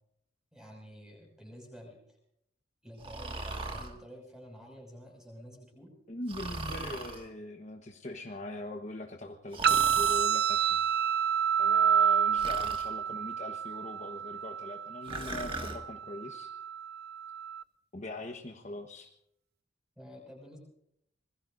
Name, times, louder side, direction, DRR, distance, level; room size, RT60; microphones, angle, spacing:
voice 1, 0.5-2.2 2.8-5.9 20.0-20.6, equal, 5° right, 0 dB, 6.1 m, -50 dB
Breathing, 3.0-3.9 6.3-7.2 9.5-10.3 12.4-12.9 15.1-15.8, right 2 dB, 25° right, 1.9 m, -39 dB
voice 2, 6.1-10.8 11.6-16.5 17.9-19.1, left 1 dB, 35° left, 3 dB, 1.2 m, -41 dB
sound 1, 9.6-17.6, right 8 dB, 50° right, 0.7 m, -29 dB
26.0 x 21.0 x 2.6 m, 0.77 s
head